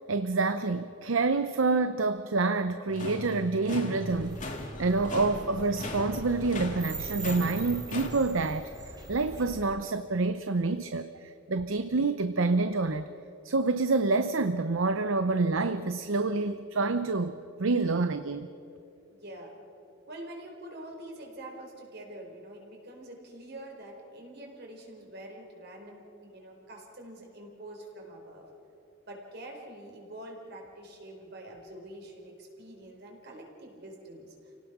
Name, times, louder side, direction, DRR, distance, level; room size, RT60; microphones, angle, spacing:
voice 1, 0.1-8.7 9.1-11.1 11.5-13.1 13.4-17.3 17.6-18.5, right 3 dB, 85° right, 9 dB, 0.7 m, -27 dB
sound 1, 2.9-8.1, left 1 dB, 40° left, 2.3 m, -39 dB
sound 2, 4.1-9.7, right 3 dB, 20° right, 2.3 m, -42 dB
voice 2, 19.1-19.6 20.1-28.5 29.1-34.6, right 1 dB, 55° right, 1 dB, 4.4 m, -45 dB
29.5 x 18.0 x 6.1 m, 2.7 s
head